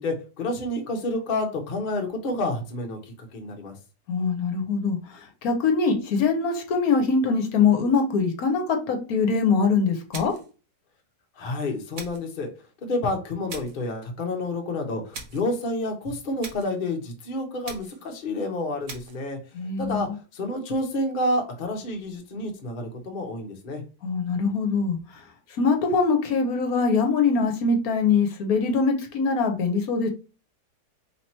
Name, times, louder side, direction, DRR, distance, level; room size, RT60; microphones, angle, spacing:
voice 1, 0.0-3.0 3.3-3.7 11.4-12.5 12.8-19.4 19.8-23.8, left 2 dB, 40° left, 2 dB, 0.8 m, -29 dB
voice 2, 4.1-10.3 19.5-20.1 24.0-25.2 25.6-30.1, left 4 dB, 65° left, 4 dB, 1.1 m, -23 dB
sound 1, 10.1-10.6 11.9-12.3 13.5-13.9 15.1-15.5 16.4-16.8 17.6-18.1 18.9-19.2, right 4 dB, 60° right, 1.2 m, -40 dB
3.2 x 2.9 x 4.2 m, 0.34 s
omnidirectional pair, 1.8 m